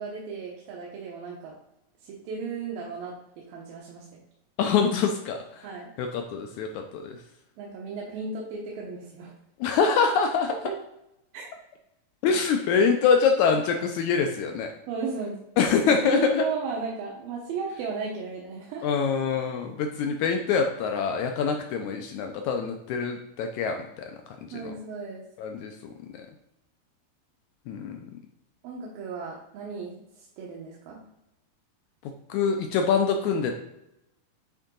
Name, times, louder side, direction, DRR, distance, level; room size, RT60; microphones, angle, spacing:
voice 1, 0.0-1.5 2.0-4.2 5.6-5.9 7.6-9.3 10.6-10.7 11.3-11.5 12.7-12.8 14.9-15.4 15.8-18.9 24.5-25.2 28.6-31.0, right 5 dB, 80° right, -3 dB, 2.9 m, -35 dB
voice 2, 4.6-5.7 6.0-7.2 9.6-10.6 12.2-14.7 15.6-16.5 18.8-24.0 24.5-24.7 25.4-26.3 27.7-28.0 32.3-33.6, left 6 dB, 80° left, 4 dB, 1.7 m, -25 dB
9.8 x 3.8 x 3.8 m, 0.87 s
omnidirectional pair, 4.0 m